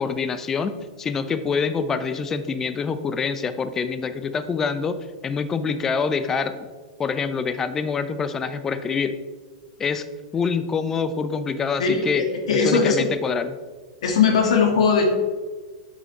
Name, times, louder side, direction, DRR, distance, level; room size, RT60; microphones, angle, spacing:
voice 1, 0.0-6.6 7.0-9.2 9.8-10.0 10.3-12.2 12.5-13.6, left 5 dB, 10° left, 11 dB, 0.4 m, -26 dB
voice 2, 11.8-13.1 14.0-15.1, left 5 dB, 85° left, 3 dB, 1.8 m, -19 dB
8.5 x 6.3 x 4.1 m, 1.4 s
supercardioid pair, 170°, 3 cm